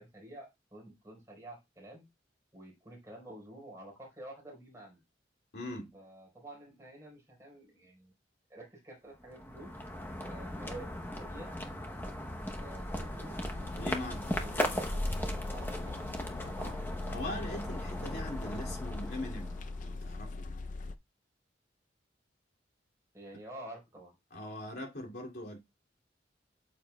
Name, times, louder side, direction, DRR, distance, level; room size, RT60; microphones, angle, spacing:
voice 1, 0.0-2.1 2.5-5.0 5.9-8.1 8.5-9.7 10.2-11.5 12.6-13.5 14.4-15.1 15.5-16.9 23.1-24.1, right 1 dB, 15° right, 4.2 m, -49 dB
voice 2, 5.5-5.9 13.8-14.2 16.6-16.8 17.1-19.5 19.8-20.5 24.3-25.6, left 1 dB, 60° left, 2.6 m, -41 dB
sound 1, 9.2-19.9, left 1 dB, 10° left, 0.8 m, -38 dB
sound 2, 13.5-20.9, left 3 dB, 45° left, 0.5 m, -41 dB
8.8 x 7.3 x 2.3 m
head